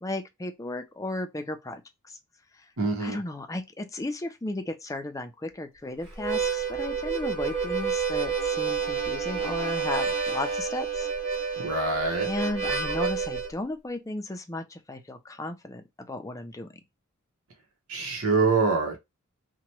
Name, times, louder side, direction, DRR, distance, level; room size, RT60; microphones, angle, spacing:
voice 1, 0.0-2.2 3.0-11.1 12.2-16.7, left 2 dB, 15° left, 0.4 m, -35 dB
voice 2, 2.8-3.2 11.6-12.3 17.9-19.0, right 4 dB, 80° right, 1.0 m, -25 dB
Harmonica, 6.1-13.5, right 5 dB, 30° right, 1.4 m, -29 dB
2.9 x 2.2 x 2.9 m
head